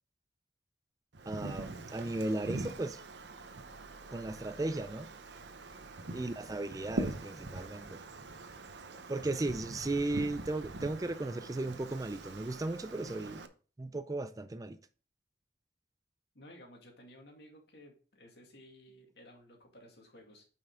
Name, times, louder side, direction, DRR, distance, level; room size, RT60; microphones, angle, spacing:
Wind, 1.1-13.5, right 2 dB, 80° right, 0.8 m, -43 dB
voice 1, 1.3-3.0 4.1-5.1 6.1-8.0 9.1-13.4 13.8-14.8, right 2 dB, 20° right, 0.4 m, -36 dB
voice 2, 6.1-6.6 16.3-20.5, equal, 70° left, 2.3 m, -56 dB
8.9 x 5.7 x 3.7 m
head